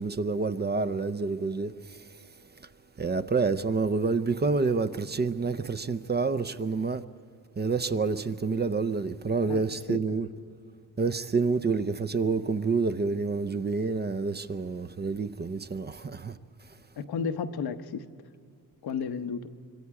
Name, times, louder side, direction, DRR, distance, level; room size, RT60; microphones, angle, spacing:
voice 1, 0.0-2.0 3.0-7.0 7.6-10.3 11.0-16.4, right 4 dB, 25° right, 0.6 m, -28 dB
voice 2, 9.4-10.2 17.0-18.0 18.8-19.5, left 6 dB, 80° left, 1.0 m, -33 dB
25.5 x 24.5 x 4.8 m
cardioid pair, 105°, 37 cm